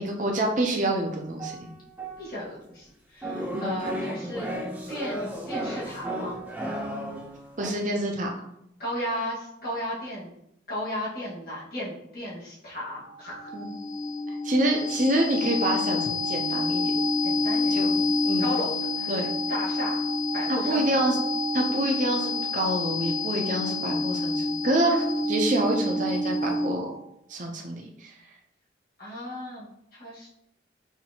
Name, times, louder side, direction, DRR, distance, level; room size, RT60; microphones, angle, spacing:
voice 1, 0.0-1.7 3.5-3.7 7.6-8.3 13.5-13.7 14.4-16.8 17.7-18.0 18.2-18.5 19.1-19.3 20.5-21.2 21.5-26.9 27.3-28.1, right 1 dB, 40° right, 1 dB, 0.8 m, -27 dB
sound 1, 1.1-2.5 3.2-7.7, right 1 dB, 10° right, 0.7 m, -34 dB
voice 2, 2.2-2.9 3.1-4.5 4.9-6.4 8.8-10.3 10.7-13.5 17.2-18.1 18.4-20.0 20.3-21.1 29.0-30.3, left 1 dB, 50° left, -7 dB, 1.8 m, -35 dB
sound 2, 13.0-26.9, left 2 dB, 70° left, 1.6 m, -28 dB
5.7 x 2.9 x 2.9 m, 0.77 s
head